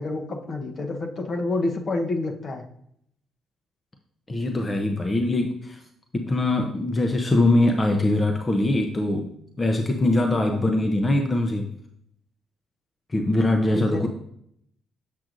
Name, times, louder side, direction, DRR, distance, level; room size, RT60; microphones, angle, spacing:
voice 1, 0.0-2.6 10.5-10.7 13.7-14.1, left 2 dB, 50° left, 4 dB, 1.0 m, -28 dB
voice 2, 4.3-5.8 6.1-9.3 9.6-11.7 13.1-14.1, left 2 dB, 25° left, 4 dB, 0.7 m, -22 dB
7.5 x 6.0 x 2.6 m, 0.70 s
cardioid pair, 90°, 0 cm